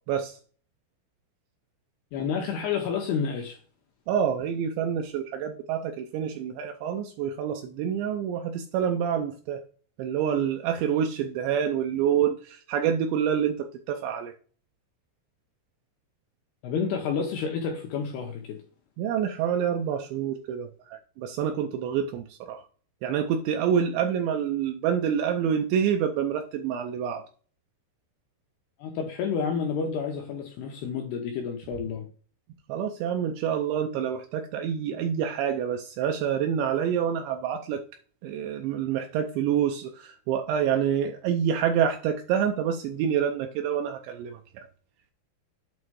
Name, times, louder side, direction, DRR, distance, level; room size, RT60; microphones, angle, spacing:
voice 1, 0.1-0.4 4.1-9.6 10.0-14.3 19.0-22.6 23.0-27.2 32.7-37.8 38.2-44.7, right 8 dB, 85° right, 2.5 m, -27 dB
voice 2, 2.1-3.6 16.6-18.6 28.8-32.1, left 6 dB, 85° left, 2.2 m, -30 dB
8.6 x 3.5 x 4.6 m
omnidirectional pair, 5.8 m